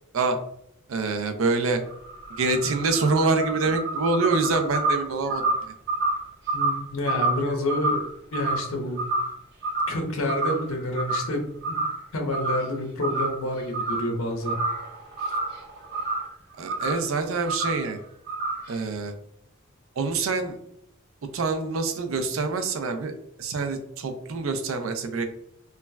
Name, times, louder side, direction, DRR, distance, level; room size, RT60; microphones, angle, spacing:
voice 1, 0.9-1.8 2.4-5.4 16.6-18.0 18.7-19.1 20.0-20.6 21.3-25.2, right 3 dB, 70° right, 7 dB, 0.4 m, -26 dB
sound 1, 1.9-9.4 9.6-10.0 10.3-11.4 11.6-12.0 12.3-12.8 13.0-14.1 14.4-16.3 16.7-17.1 17.5-17.9 18.3-18.8, right 2 dB, 55° right, 1.0 m, -28 dB
voice 2, 6.5-8.0 8.3-9.0 9.9-11.8 12.1-14.6 15.2-15.4, left 1 dB, 85° left, 2 dB, 0.7 m, -28 dB
3.1 x 2.3 x 2.2 m, 0.74 s
head